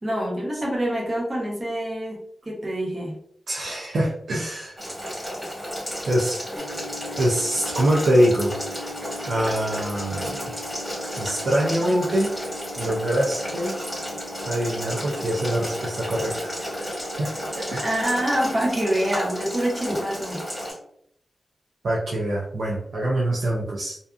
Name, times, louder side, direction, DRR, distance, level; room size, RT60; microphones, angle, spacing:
voice 1, 0.0-3.2 17.8-20.4, equal, 25° right, -3 dB, 0.8 m, -26 dB
voice 2, 3.5-4.8 6.1-6.4 7.2-8.9 9.3-10.5 11.2-12.3 12.8-13.7 14.4-16.9 17.2-17.9 21.8-24.0, right 1 dB, 75° right, -4 dB, 0.4 m, -24 dB
Boiling, 4.8-20.7, equal, 10° right, 1.4 m, -32 dB
sound 1, 6.6-20.7, left 3 dB, 45° left, 0.6 m, -44 dB
2.5 x 2.4 x 2.3 m, 0.70 s
wide cardioid pair, 165°, 0 cm